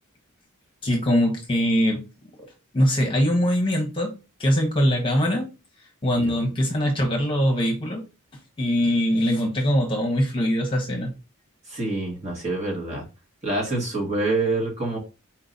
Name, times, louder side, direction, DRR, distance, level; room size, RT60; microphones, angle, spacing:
voice 1, 0.8-2.0 2.4-4.1 4.4-5.5 6.0-8.0 8.6-11.1, equal, 25° left, 1.1 m, -22 dB
voice 2, 11.7-13.0 13.4-15.0, right 2 dB, 30° right, 1.6 m, -26 dB
4.4 x 2.9 x 3.9 m
head